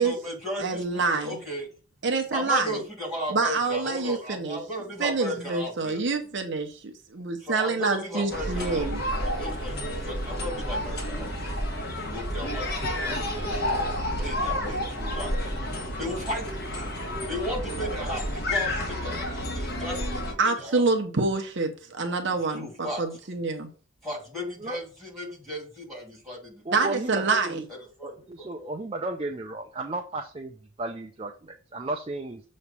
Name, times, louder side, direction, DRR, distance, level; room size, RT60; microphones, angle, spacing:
voice 1, 0.0-1.7 2.3-6.0 7.4-8.9 9.4-11.3 11.9-13.8 14.2-15.5 16.0-16.9 17.3-20.8 22.5-23.0 24.0-27.0 27.7-28.7, equal, ahead, 2.9 m, -36 dB
voice 2, 0.6-1.3 2.0-2.8 3.3-4.6 5.0-9.0 20.4-23.7 26.7-27.6, right 3 dB, 55° right, 0.8 m, -27 dB
sound 1, 8.3-20.3, left 1 dB, 50° left, 1.6 m, -30 dB
voice 3, 26.6-27.7 28.0-32.4, right 2 dB, 25° right, 0.5 m, -34 dB
7.0 x 3.2 x 5.4 m
head